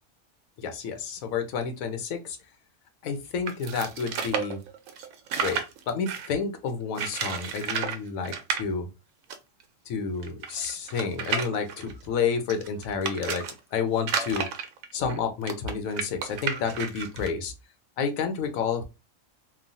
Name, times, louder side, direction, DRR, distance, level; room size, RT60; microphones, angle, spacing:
voice 1, 0.6-2.4 3.0-4.6 5.4-5.6 5.9-8.9 9.9-13.4 13.7-14.5 14.9-17.5 18.0-18.8, left 6 dB, 85° left, 7 dB, 1.1 m, -30 dB
sound 1, 3.5-6.4 6.9-8.0 8.2-8.6 9.3-9.4 9.6-9.7 10.2-13.5 14.0-17.3, right 6 dB, 90° right, 1.0 m, -32 dB
3.0 x 2.2 x 2.5 m, 0.26 s
omnidirectional pair, 1.4 m